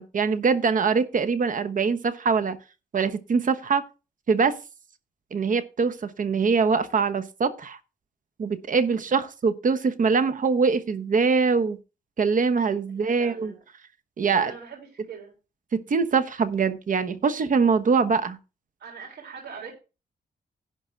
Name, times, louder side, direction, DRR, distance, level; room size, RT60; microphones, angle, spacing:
voice 1, 0.0-2.6 2.9-3.8 4.3-4.6 5.3-7.8 8.4-11.8 12.2-13.5 14.2-14.5 15.7-18.4, right 5 dB, 50° right, 11 dB, 1.1 m, -23 dB
voice 2, 12.9-13.6 14.3-15.3 18.8-19.8, right 6 dB, 80° right, 1 dB, 3.5 m, -42 dB
11.0 x 3.9 x 7.5 m, 0.31 s
wide cardioid pair, 125°, 17 cm